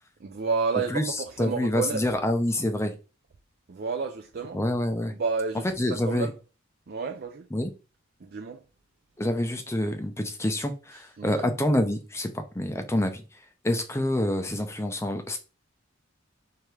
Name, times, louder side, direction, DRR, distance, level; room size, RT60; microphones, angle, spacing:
voice 1, 0.2-2.0 3.7-4.6 5.1-6.4 6.9-7.5 8.2-8.6 11.2-11.5, right 4 dB, 50° right, 0.4 m, -30 dB
voice 2, 0.9-2.9 4.5-5.1 5.8-6.3 7.5-7.7 9.2-13.2 13.6-15.4, left 1 dB, 15° left, 0.5 m, -27 dB
4.6 x 3.5 x 3.2 m
head